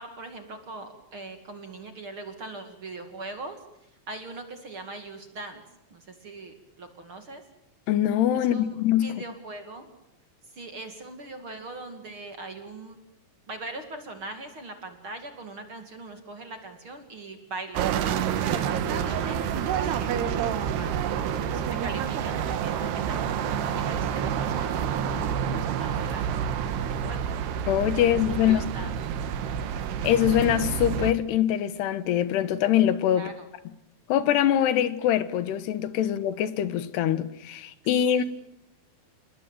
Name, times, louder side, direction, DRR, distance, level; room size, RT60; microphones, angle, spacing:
voice 1, 0.0-3.6 4.1-5.6 5.9-7.4 8.3-9.9 10.5-13.0 13.5-20.4 20.8-21.0 21.4-23.3 23.7-25.1 25.4-26.2 26.9-27.3 28.0-28.9 33.1-33.5 37.9-38.2, right 3 dB, 40° right, 2.5 m, -41 dB
voice 2, 7.9-9.2 27.7-28.7 30.0-33.3 34.1-38.2, left 11 dB, 80° left, 3.4 m, -23 dB
sound 1, 17.8-31.1, right 8 dB, 80° right, 3.5 m, -28 dB
28.0 x 21.0 x 9.1 m
omnidirectional pair, 4.7 m